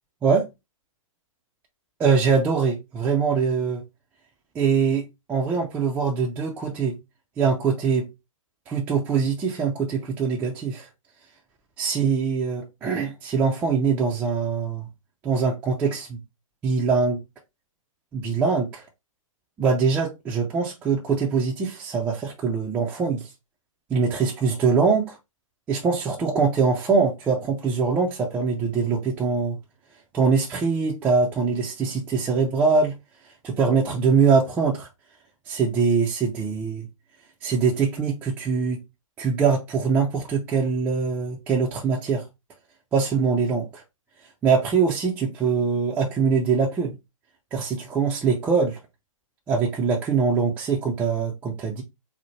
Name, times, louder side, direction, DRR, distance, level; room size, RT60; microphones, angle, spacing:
voice 1, 2.0-3.8 4.5-7.0 7.4-8.1 8.7-10.9 11.8-14.9 15.2-16.2 16.6-17.2 18.1-18.8 19.6-23.3 23.9-25.2 25.7-29.6 30.1-32.9 33.4-34.9 35.5-36.9 37.4-38.8 39.2-42.3 42.9-43.8 44.4-47.0 47.5-48.8 49.5-51.8, right 5 dB, 10° right, 0.4 m, -23 dB
4.2 x 2.0 x 3.0 m
hypercardioid pair, 135°, 18 cm